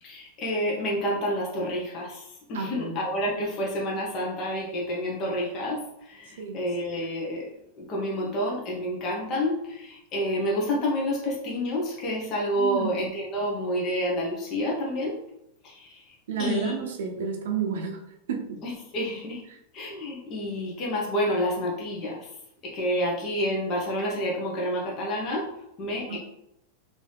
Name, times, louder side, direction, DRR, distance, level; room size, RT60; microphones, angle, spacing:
voice 1, 0.0-7.5 7.8-15.2 15.6-16.0 16.4-16.7 17.1-17.3 18.6-19.4 19.7-22.2 22.6-25.4 25.8-26.2, equal, 35° left, -3 dB, 1.0 m, -29 dB
voice 2, 2.5-3.1 6.4-6.6 12.6-12.9 16.3-18.0 18.3-18.6 19.5-19.6 26.1-26.2, right 6 dB, 80° right, 3 dB, 0.7 m, -31 dB
3.3 x 2.7 x 3.4 m, 0.81 s
hypercardioid pair, 125°, 0 cm